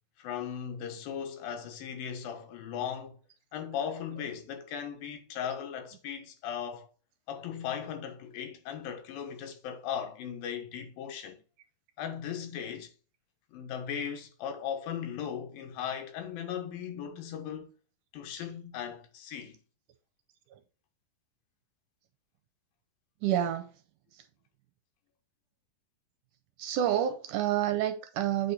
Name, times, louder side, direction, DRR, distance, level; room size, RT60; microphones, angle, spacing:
voice 1, 0.2-3.2 3.5-6.9 7.3-11.4 12.0-12.9 13.5-17.7 18.1-19.6, left 8 dB, 85° left, 2.9 m, -37 dB
voice 2, 23.2-23.7 24.1-24.2 26.6-28.5, right 11 dB, 75° right, 2.0 m, -29 dB
8.2 x 4.2 x 4.0 m
omnidirectional pair, 4.0 m